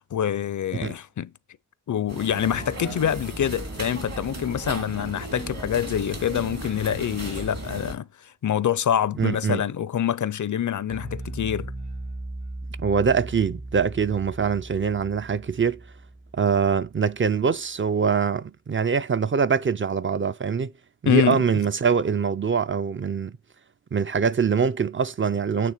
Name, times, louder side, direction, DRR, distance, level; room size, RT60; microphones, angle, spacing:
voice 1, 0.1-1.3 1.9-8.1 8.4-11.7 21.1-21.4, left 9 dB, 70° left, 0.5 m, -25 dB
sound 1, 2.1-7.9, right 2 dB, 55° right, 2.4 m, -35 dB
voice 2, 9.2-9.6 12.8-15.8 16.3-20.7 21.0-23.3 23.9-25.7, right 6 dB, 40° right, 0.4 m, -23 dB
Bass guitar, 10.9-17.3, right 1 dB, 75° right, 4.1 m, -38 dB
9.2 x 3.3 x 5.0 m
wide cardioid pair, 100°, 31 cm